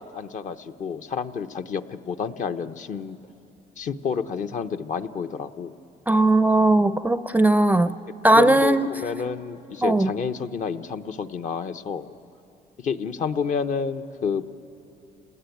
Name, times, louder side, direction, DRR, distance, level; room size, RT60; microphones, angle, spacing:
voice 1, 0.0-3.2 3.8-5.8 8.3-12.1 12.8-14.5, left 6 dB, 45° left, 8 dB, 0.9 m, -29 dB
voice 2, 6.1-7.9 8.2-8.9 9.8-10.1, right 2 dB, 10° right, 13 dB, 0.5 m, -18 dB
28.5 x 19.0 x 9.3 m, 2.8 s
cardioid pair, 110°, 17 cm